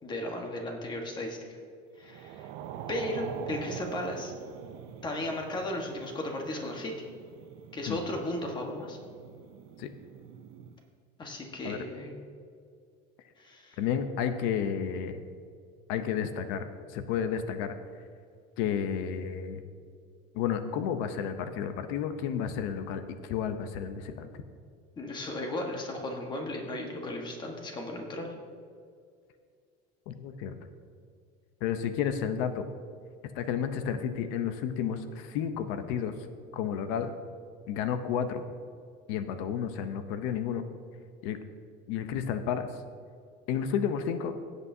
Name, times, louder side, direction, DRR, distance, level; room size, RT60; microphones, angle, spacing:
voice 1, 0.0-1.6 2.0-2.5 2.9-4.3 5.0-6.9 7.7-9.0 11.2-12.1 13.4-13.8 25.0-28.3, left 1 dB, 20° left, 2 dB, 1.4 m, -35 dB
sound 1, 2.0-10.8, right 9 dB, 75° right, 0.7 m, -44 dB
voice 2, 13.8-15.2 15.9-17.8 18.6-19.6 20.3-24.4 30.1-30.5 31.6-32.7 33.3-36.1 36.5-37.1 37.7-38.4 39.1-40.6 41.2-41.4 41.9-42.7 43.5-44.4, left 8 dB, 70° left, 9 dB, 0.7 m, -31 dB
16.5 x 8.1 x 2.7 m, 2.3 s
cardioid pair, 160°, 20 cm